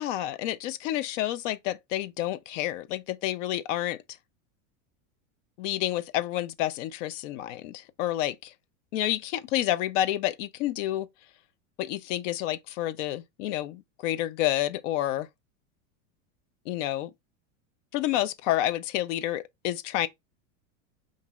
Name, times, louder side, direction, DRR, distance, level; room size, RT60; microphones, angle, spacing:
voice 1, 0.0-4.0 5.6-8.5 8.9-11.1 11.8-15.3 16.7-17.1 17.9-20.1, left 13 dB, 70° left, 0.5 m, -29 dB
2.9 x 2.6 x 3.5 m
supercardioid pair, 135°, 39 cm